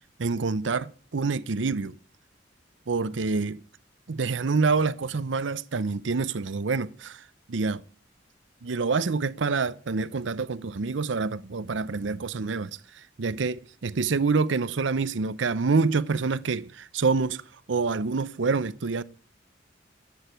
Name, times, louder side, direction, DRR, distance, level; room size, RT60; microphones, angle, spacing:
voice 1, 0.2-1.9 2.9-3.6 4.1-7.8 8.6-17.4 17.7-19.0, right 4 dB, 80° right, 0.6 m, -27 dB
12.5 x 8.7 x 9.0 m
head